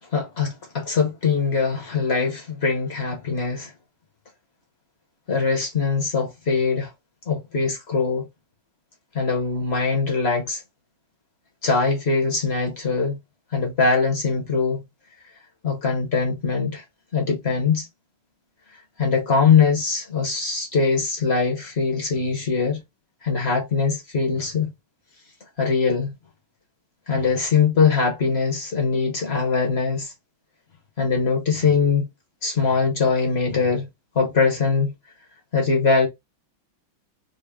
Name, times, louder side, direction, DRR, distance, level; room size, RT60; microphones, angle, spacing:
voice 1, 0.1-3.7 5.3-6.9 7.3-8.3 9.1-10.6 11.6-13.2 13.5-14.8 15.6-16.8 17.1-17.9 19.0-22.8 23.2-24.7 25.6-26.1 27.1-30.1 31.0-32.0 32.4-33.9 34.1-34.9 35.5-36.1, left 5 dB, 45° left, 0.8 m, -22 dB
3.9 x 2.1 x 3.4 m
omnidirectional pair, 2.1 m